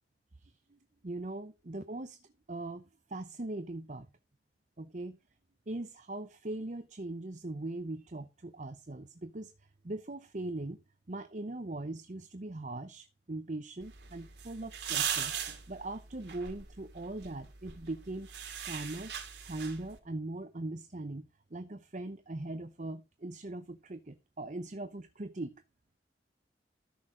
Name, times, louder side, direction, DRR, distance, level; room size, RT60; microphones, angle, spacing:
voice 1, 0.4-2.2 2.5-4.1 4.8-5.2 5.7-9.5 9.8-10.8 11.1-15.3 15.7-18.3 18.6-19.1 19.5-25.6, right 2 dB, 45° right, 0.8 m, -40 dB
sound 1, 13.8-20.0, right 8 dB, 75° right, 2.4 m, -40 dB
13.5 x 6.5 x 3.8 m
head